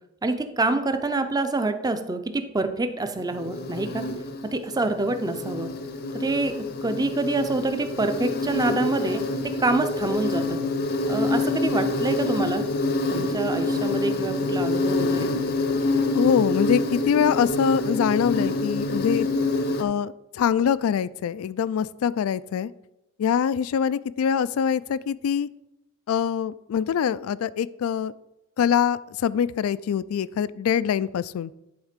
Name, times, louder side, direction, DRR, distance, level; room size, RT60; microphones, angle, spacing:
voice 1, 0.2-4.0 4.4-5.7 6.1-6.5 6.8-10.6 11.1-12.6 13.1-15.3, right 2 dB, 20° right, 8 dB, 0.5 m, -26 dB
Insect, 3.1-19.8, left 2 dB, 50° left, 0.7 m, -26 dB
voice 2, 16.1-19.3 19.8-22.7 23.2-25.5 26.1-28.1 28.6-31.5, left 8 dB, 75° left, 19 dB, 0.3 m, -24 dB
10.5 x 3.6 x 5.1 m, 0.92 s
head